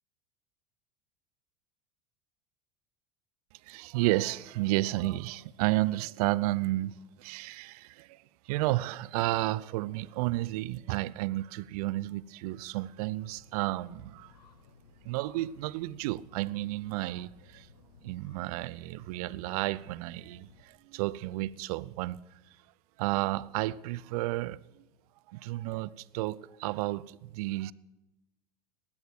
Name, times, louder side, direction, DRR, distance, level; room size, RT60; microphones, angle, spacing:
voice 1, 3.6-14.3 15.0-17.7 18.0-22.2 23.0-24.9 25.3-27.7, right 18 dB, 65° right, 0.6 m, -32 dB
sound 1, 13.1-20.6, left 4 dB, 85° left, 1.5 m, -59 dB
19.5 x 8.7 x 6.3 m
hypercardioid pair, 90°, 20 cm